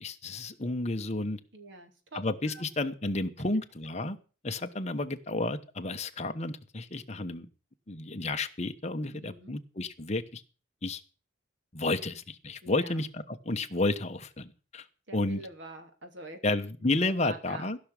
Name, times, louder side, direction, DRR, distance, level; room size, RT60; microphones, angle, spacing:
voice 1, 0.0-1.4 2.1-4.2 4.4-7.5 7.9-10.4 10.8-11.0 11.7-14.9 15.1-15.4 16.4-17.8, left 2 dB, 35° left, 7 dB, 1.1 m, -31 dB
voice 2, 1.5-2.6 9.1-9.5 12.6-13.0 15.1-16.4 17.2-17.7, right 1 dB, 60° right, 6 dB, 2.9 m, -45 dB
15.5 x 6.2 x 8.3 m, 0.37 s
head